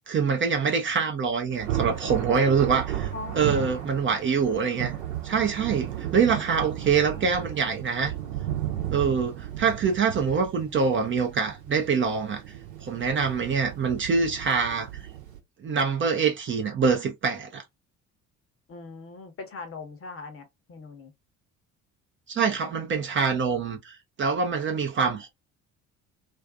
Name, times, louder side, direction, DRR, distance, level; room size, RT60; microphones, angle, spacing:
voice 1, 0.1-3.1 3.3-4.9 5.2-8.1 8.9-12.4 12.8-14.9 15.6-17.6 22.3-25.3, right 5 dB, 30° right, 0.6 m, -25 dB
Thunder, 1.5-15.4, right 12 dB, 70° right, 0.9 m, -34 dB
voice 2, 3.1-4.0 6.8-7.7 18.7-21.1, left 4 dB, 35° left, 0.9 m, -42 dB
2.5 x 2.4 x 2.4 m
figure-of-eight pair, 55°, 41 cm